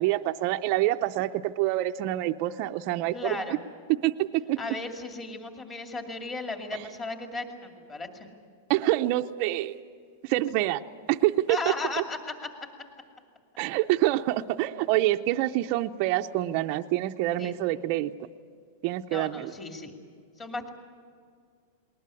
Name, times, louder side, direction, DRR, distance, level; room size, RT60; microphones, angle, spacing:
voice 1, 0.0-3.4 4.0-4.6 8.7-9.8 10.2-10.8 11.1-11.6 13.6-18.1 18.8-19.5, right 15 dB, 40° right, 6 dB, 0.6 m, -26 dB
voice 2, 3.1-3.6 4.6-8.3 11.5-12.5 17.4-17.5 19.1-19.9 20.4-20.7, left 3 dB, 20° left, 4 dB, 2.4 m, -35 dB
20.0 x 19.5 x 9.7 m, 2.1 s
supercardioid pair, 160°, 0 cm